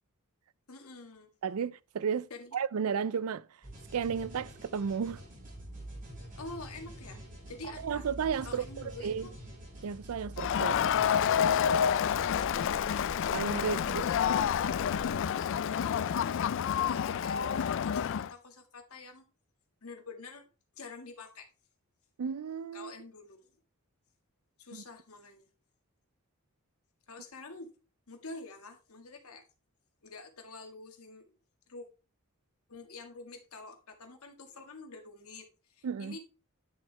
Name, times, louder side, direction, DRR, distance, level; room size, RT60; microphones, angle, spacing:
voice 1, 0.7-1.3 2.3-2.6 6.4-7.2 7.5-8.1 8.4-9.3 13.6-15.0 15.5-16.4 16.8-19.3 19.8-20.5 20.7-21.5 22.7-23.5 24.6-25.5 27.1-27.7 28.1-29.4 30.0-31.3 31.7-31.9 32.7-36.2, left 3 dB, 80° left, 1.8 m, -47 dB
voice 2, 1.4-3.5 3.9-5.2 7.8-9.3 9.8-10.7 13.3-14.1 22.2-22.9 24.7-24.8 35.8-36.2, right 6 dB, 80° right, 0.4 m, -33 dB
sound 1, 3.6-15.2, right 1 dB, 40° right, 4.3 m, -46 dB
Crowd, 10.4-18.3, left 8 dB, 60° left, 0.3 m, -29 dB
10.5 x 6.4 x 3.3 m
head